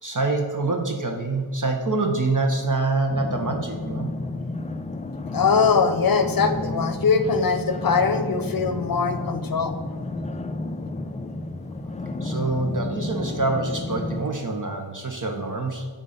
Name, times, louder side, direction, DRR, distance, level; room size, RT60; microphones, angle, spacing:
voice 1, 0.0-4.1 12.2-15.9, right 3 dB, 40° right, 3 dB, 0.9 m, -25 dB
sound 1, 3.1-14.2, left 2 dB, 15° left, 0.3 m, -31 dB
voice 2, 5.3-10.0, left 5 dB, 45° left, 10 dB, 0.7 m, -22 dB
9.1 x 3.8 x 5.6 m, 1.5 s
wide cardioid pair, 70°, 47 cm